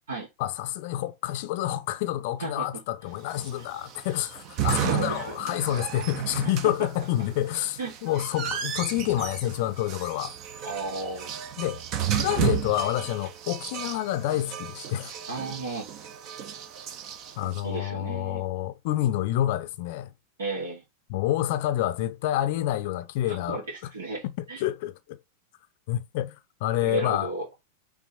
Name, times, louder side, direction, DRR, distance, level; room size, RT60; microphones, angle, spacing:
voice 1, 0.4-10.3 11.6-11.8 12.1-15.1 17.4-20.1 21.1-23.6 24.6-25.2 25.9-26.4 26.6-27.3, left 13 dB, 50° left, 0.6 m, -28 dB
voice 2, 2.4-2.8 4.6-5.6 7.8-8.0 10.6-11.4 15.3-15.9 17.6-18.4 20.4-20.8 23.3-24.6 26.8-27.5, right 2 dB, 65° right, 2.5 m, -34 dB
sound 1, 3.3-17.6, right 10 dB, 40° right, 1.0 m, -33 dB
6.1 x 3.8 x 5.1 m
figure-of-eight pair, 90°, 0 cm